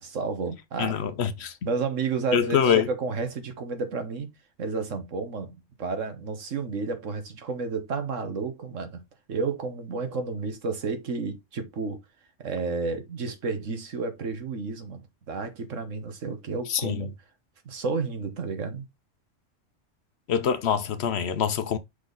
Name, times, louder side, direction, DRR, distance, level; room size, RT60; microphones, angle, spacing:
voice 1, 0.0-1.0 1.6-4.3 4.6-9.0 9.3-12.0 12.4-15.0 15.3-17.1 17.6-18.9, right 4 dB, 85° right, 1.6 m, -31 dB
voice 2, 0.8-1.5 2.3-2.9 16.7-17.1 20.3-21.8, left 7 dB, 65° left, 0.9 m, -25 dB
6.0 x 4.1 x 3.9 m
omnidirectional pair, 1.3 m